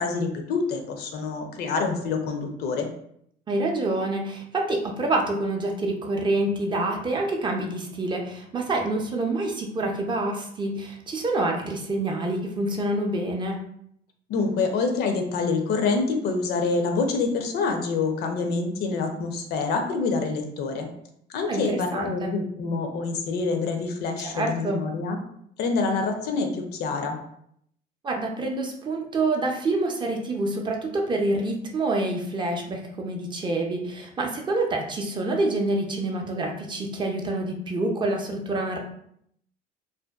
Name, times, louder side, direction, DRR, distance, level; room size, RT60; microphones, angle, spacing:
voice 1, 0.0-2.9 14.3-20.9 21.3-25.2 25.6-27.2, left 4 dB, 75° left, 4 dB, 0.5 m, -26 dB
voice 2, 3.5-13.6 21.5-22.3 24.2-24.8 28.0-38.8, right 2 dB, 30° right, 1 dB, 0.4 m, -27 dB
2.5 x 2.2 x 2.3 m, 0.70 s
cardioid pair, 110°, 17 cm